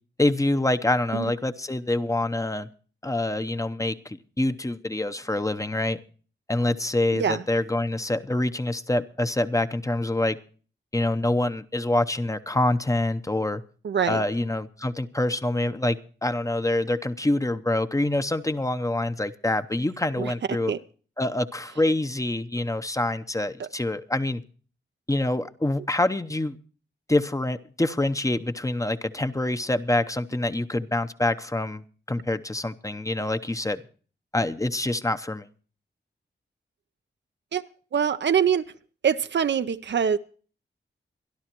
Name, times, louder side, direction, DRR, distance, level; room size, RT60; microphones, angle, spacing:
voice 1, 0.2-2.7 3.0-6.0 6.5-10.4 10.9-13.6 14.1-20.7 21.2-24.4 25.1-26.6 27.1-31.8 32.1-33.8 34.3-35.5, left 1 dB, 15° left, 11 dB, 0.8 m, -26 dB
voice 2, 13.8-14.2 20.2-20.8 23.6-23.7 37.5-37.6 37.9-38.7 39.0-40.2, right 7 dB, 65° right, 11 dB, 0.6 m, -24 dB
25.5 x 11.0 x 3.0 m, 0.41 s
cardioid pair, 75°, 19 cm